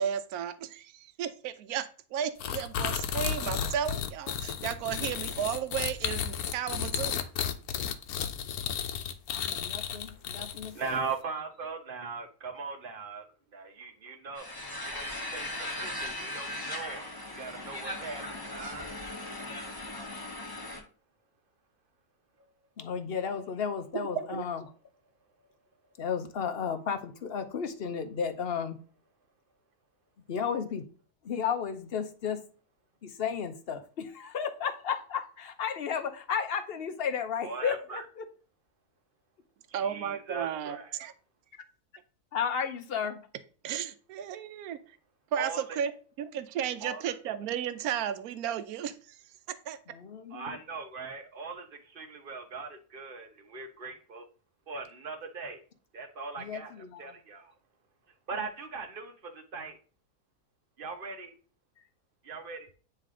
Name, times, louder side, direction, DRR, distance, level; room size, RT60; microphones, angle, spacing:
voice 1, 0.0-7.2 24.3-24.4 39.7-41.1 43.6-44.8 45.3-45.9 46.2-49.2 49.7-49.8, right 9 dB, 80° right, 11 dB, 1.1 m, -34 dB
sound 1, 2.4-10.9, left 8 dB, 85° left, 1.2 m, -33 dB
voice 2, 9.3-11.0 22.8-24.6 26.0-28.8 30.3-30.8 31.2-32.4 33.0-38.2 42.3-43.2 49.9-50.6 56.4-57.1, left 7 dB, 50° left, 8 dB, 0.8 m, -33 dB
voice 3, 10.7-13.3 13.5-14.5 14.8-19.0 37.4-38.0 39.7-41.0 45.3-45.8 46.8-47.1 50.3-54.3 54.7-55.6 55.9-57.5 58.3-59.8 60.8-61.3 62.2-62.7, right 4 dB, 40° right, 6 dB, 1.0 m, -40 dB
sound 2, 14.4-20.8, left 1 dB, 15° left, 1.0 m, -38 dB
9.2 x 3.3 x 3.7 m, 0.40 s
omnidirectional pair, 1.5 m